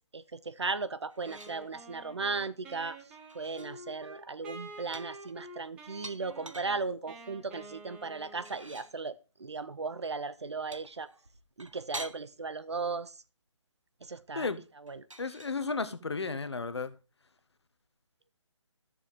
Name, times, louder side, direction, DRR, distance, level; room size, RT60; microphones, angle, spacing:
voice 1, 0.1-3.0 3.3-11.1 11.6-13.1 14.0-14.5 14.9-15.1, right 4 dB, 60° right, 0.6 m, -36 dB
sound 1, 1.1-1.6 3.1-3.7 4.9-6.8 8.3-9.0 10.7-12.2 14.9-15.6, right 1 dB, 85° right, 1.1 m, -46 dB
Wind instrument woodwind instrument, 1.2-8.9, right 2 dB, 5° right, 0.6 m, -49 dB
voice 2, 15.2-16.9, left 4 dB, 60° left, 1.1 m, -33 dB
13.0 x 6.9 x 3.6 m
figure-of-eight pair, 145°, 16 cm